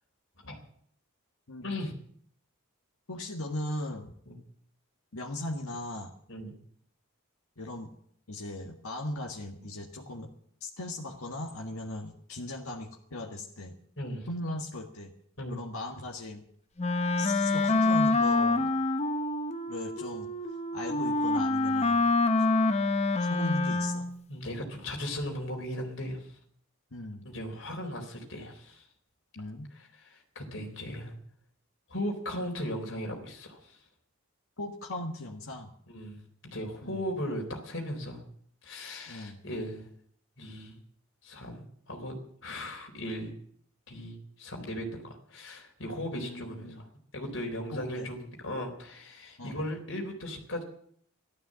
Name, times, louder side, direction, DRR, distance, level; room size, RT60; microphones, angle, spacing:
voice 1, 1.6-1.9 4.3-4.4 6.3-6.5 14.0-14.3 15.4-15.6 24.3-26.3 27.2-28.9 29.7-31.1 31.9-33.8 35.9-38.2 38.6-39.9 40.4-40.8 41.2-43.3 43.9-46.8 47.1-50.6, equal, 60° left, 1 dB, 3.9 m, -37 dB
voice 2, 3.1-4.1 5.1-6.1 7.6-7.9 8.3-10.3 10.6-13.7 14.3-15.1 15.5-16.4 17.2-18.8 19.7-20.3 20.7-22.1 23.2-24.1 26.9-27.2 29.4-29.7 34.6-35.7 36.8-37.1 39.1-39.4 46.1-46.8 47.7-48.1 49.4-49.7, left 1 dB, 80° left, 1 dB, 1.7 m, -38 dB
Wind instrument woodwind instrument, 16.8-24.2, left 2 dB, 30° left, 1.0 m, -26 dB
15.0 x 12.5 x 7.6 m, 0.65 s
head